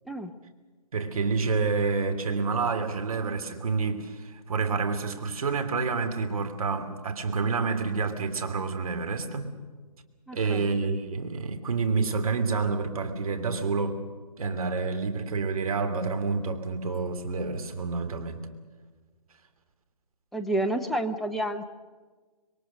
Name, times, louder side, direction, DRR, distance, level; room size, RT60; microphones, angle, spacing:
voice 1, 0.9-9.5 10.3-14.0 14.4-18.4, right 4 dB, 60° right, 3.1 m, -28 dB
voice 2, 10.3-10.7 20.3-21.6, right 1 dB, ahead, 0.6 m, -29 dB
26.5 x 22.0 x 6.5 m
figure-of-eight pair, 145°, 21 cm